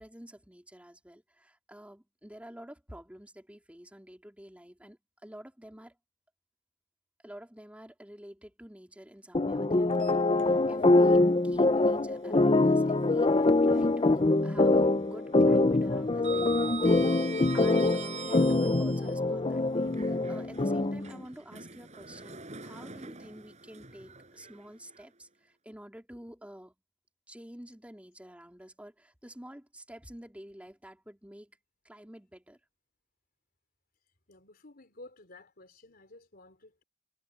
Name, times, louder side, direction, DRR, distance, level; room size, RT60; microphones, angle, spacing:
voice 1, 0.0-6.0 7.2-16.7 17.5-26.7 27.3-31.6 31.8-32.6, equal, 5° right, 3.1 m, -49 dB
sound 1, 9.3-21.1, left 2 dB, 30° left, 0.7 m, -24 dB
Sliding door, 9.9-10.9 11.3-11.4 13.1-14.1 14.4-14.8 15.0-19.1 19.8-25.0, right 6 dB, 40° right, 6.7 m, -44 dB
voice 2, 34.3-36.8, left 2 dB, 50° left, 4.1 m, -53 dB
head